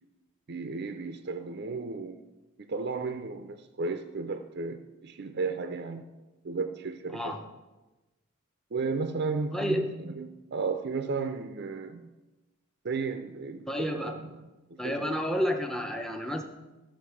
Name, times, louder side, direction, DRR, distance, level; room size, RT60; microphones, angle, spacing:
voice 1, 0.5-2.2 2.7-6.1 6.4-7.5 8.7-12.1 12.8-14.4 14.7-15.1, right 4 dB, 50° right, 7 dB, 0.5 m, -34 dB
voice 2, 9.5-9.9 13.7-14.2 14.8-16.4, equal, ahead, 3 dB, 0.7 m, -30 dB
13.5 x 6.3 x 4.8 m, 1.1 s
head